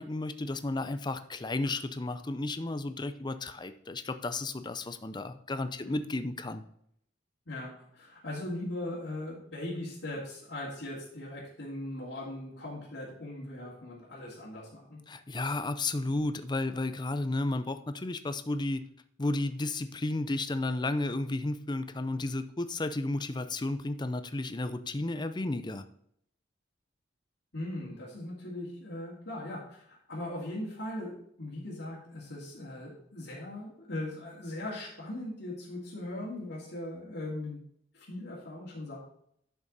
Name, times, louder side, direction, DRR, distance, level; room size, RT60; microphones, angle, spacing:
voice 1, 0.0-6.6 15.1-18.8 19.2-25.8, left 2 dB, 25° left, 11 dB, 0.6 m, -33 dB
voice 2, 7.5-15.0 27.5-37.6 37.9-39.0, left 1 dB, 65° left, -9 dB, 2.7 m, -39 dB
10.5 x 6.3 x 4.1 m, 0.69 s
head